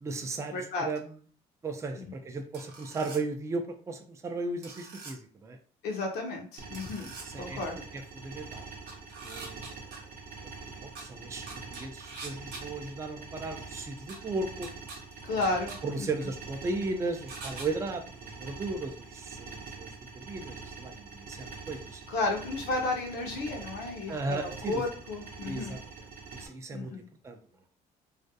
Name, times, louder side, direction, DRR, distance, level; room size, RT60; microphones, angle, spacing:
voice 1, 0.0-1.2 1.6-5.6 7.2-7.6 7.9-8.7 9.2-9.8 10.8-14.7 15.3-15.5 15.8-22.0 24.1-24.8 25.4-27.4, right 3 dB, 15° right, 5 dB, 0.4 m, -36 dB
voice 2, 0.5-0.9 5.8-7.1 7.4-7.7 15.2-16.1 22.1-24.2 24.4-25.7 26.7-27.1, left 2 dB, 75° left, 1 dB, 0.6 m, -32 dB
sound 1, 2.5-3.2 4.6-5.1 6.7-7.3 8.9-10.0 11.0-11.1 11.5-12.6 14.1-14.2 14.6-15.0 15.4-15.8 17.3-17.7, right 3 dB, 90° right, 0.9 m, -43 dB
sound 2, 6.6-26.5, right 4 dB, 60° right, 0.6 m, -45 dB
2.4 x 2.2 x 2.6 m, 0.43 s
cardioid pair, 110°, 17 cm